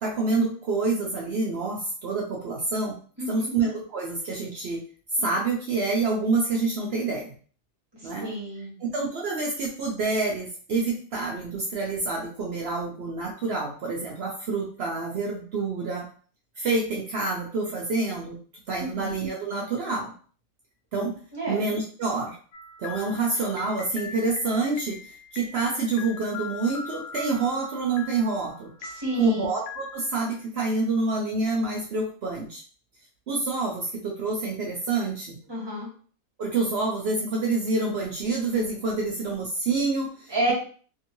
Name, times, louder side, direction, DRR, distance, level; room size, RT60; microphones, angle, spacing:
voice 1, 0.0-3.0 3.3-4.8 5.2-7.3 8.0-8.3 8.8-16.1 16.6-18.4 18.7-20.1 20.9-21.1 21.5-22.4 22.8-28.7 29.2-32.6 33.3-35.4 36.4-40.5, right 3 dB, 75° right, -1 dB, 0.5 m, -27 dB
voice 2, 3.2-3.5 8.0-8.8 18.8-19.1 21.3-21.6 28.9-29.5 35.5-35.9 40.3-40.5, right 1 dB, 15° right, -5 dB, 1.3 m, -30 dB
sound 1, 22.5-30.4, left 4 dB, 85° left, 1.1 m, -41 dB
2.9 x 2.6 x 2.9 m, 0.43 s
omnidirectional pair, 1.6 m